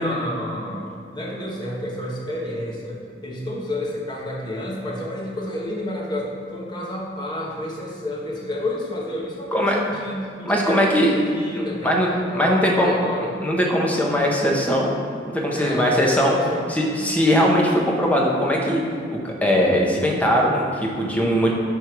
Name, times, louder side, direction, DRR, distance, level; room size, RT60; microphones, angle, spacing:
voice 1, 0.0-12.0 12.3-13.4 15.5-16.6 16.9-17.0, left 1 dB, 25° left, -4 dB, 1.2 m, -30 dB
voice 2, 10.5-11.1 11.6-12.9 13.4-14.9 15.3-16.4 16.7-18.8 19.2-21.5, equal, 10° left, -2 dB, 0.9 m, -20 dB
10.5 x 3.5 x 4.6 m, 2.3 s
head